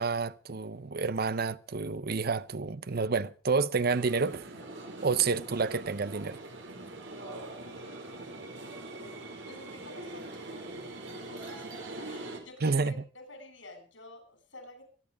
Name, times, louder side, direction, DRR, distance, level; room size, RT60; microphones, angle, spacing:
voice 1, 0.0-4.5 5.0-6.4 12.6-12.9, right 4 dB, 55° right, 0.8 m, -29 dB
sound 1, 3.8-12.4, right 2 dB, 75° right, 4.7 m, -43 dB
voice 2, 8.6-14.9, left 2 dB, 85° left, 7.3 m, -51 dB
24.0 x 11.0 x 5.1 m
head